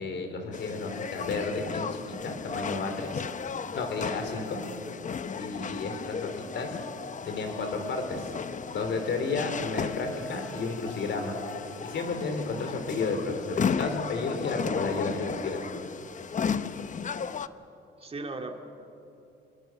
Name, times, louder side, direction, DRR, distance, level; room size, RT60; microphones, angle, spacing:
voice 1, 0.0-3.2 3.7-4.6 5.4-6.7 7.3-8.3 8.6-11.4 11.8-15.7, left 3 dB, 65° left, 5 dB, 4.2 m, -32 dB
sound 1, 0.5-17.5, left 6 dB, 40° left, 0.8 m, -35 dB
voice 2, 5.8-6.3 18.0-18.5, right 3 dB, 30° right, 3 dB, 2.6 m, -39 dB
Bowed string instrument, 9.0-12.5 13.0-13.4, left 2 dB, 90° left, 3.1 m, -52 dB
27.0 x 21.5 x 6.6 m, 2.8 s
cardioid pair, 90°, 20 cm